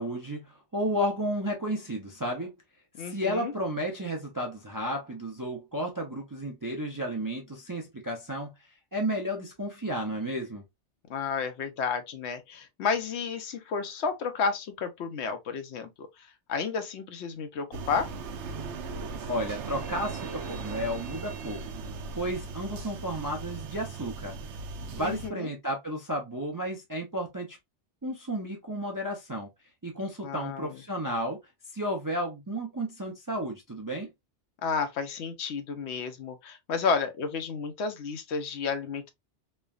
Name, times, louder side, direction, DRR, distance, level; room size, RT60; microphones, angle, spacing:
voice 1, 0.0-2.5 3.0-8.5 8.9-10.6 19.3-21.6 22.1-24.3 24.9-27.6 28.0-29.5 29.8-31.4 31.7-34.1, equal, 30° right, 0.4 m, -32 dB
voice 2, 3.0-3.5 11.1-18.1 24.9-25.5 30.2-30.8 34.6-39.1, left 5 dB, 75° left, 0.9 m, -32 dB
sound 1, 17.7-25.3, right 4 dB, 80° right, 0.9 m, -38 dB
3.2 x 2.1 x 2.3 m
omnidirectional pair, 1.2 m